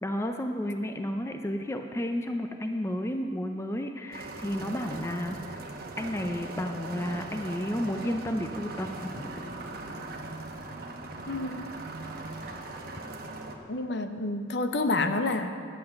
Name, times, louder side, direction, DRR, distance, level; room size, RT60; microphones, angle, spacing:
voice 1, 0.0-5.7 6.0-9.3, left 1 dB, 15° left, 5 dB, 0.5 m, -32 dB
sound 1, 4.1-13.6, right 2 dB, 55° right, 1.0 m, -40 dB
voice 2, 11.3-11.6 13.7-15.5, left 2 dB, 65° left, 7 dB, 0.7 m, -28 dB
10.5 x 8.3 x 6.5 m, 2.3 s
head